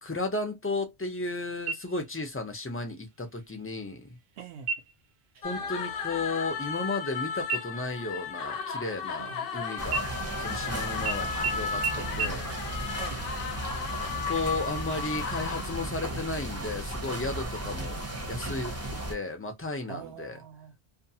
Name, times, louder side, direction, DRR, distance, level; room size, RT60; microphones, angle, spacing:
voice 1, 0.0-4.2 5.4-10.1 10.4-11.8 12.2-12.5 14.3-18.0 18.3-20.4, left 2 dB, 20° left, 0.4 m, -34 dB
sound 1, 1.7-2.3 2.7-2.8 3.4-3.9 4.6-5.1 5.5-5.8 6.1-7.2 7.5-9.5 9.9-10.7 11.1-11.2 11.4-11.5 11.8-11.9 12.2-12.3, right 5 dB, 55° right, 0.6 m, -34 dB
voice 2, 4.4-4.7 9.1-9.5 12.0-12.5 12.9-13.4 19.9-20.8, right 7 dB, 85° right, 0.9 m, -43 dB
sound 2, 5.4-15.8, left 6 dB, 65° left, 0.7 m, -35 dB
sound 3, 9.8-19.1, right 1 dB, 15° right, 0.6 m, -35 dB
2.6 x 2.3 x 2.7 m
omnidirectional pair, 1.1 m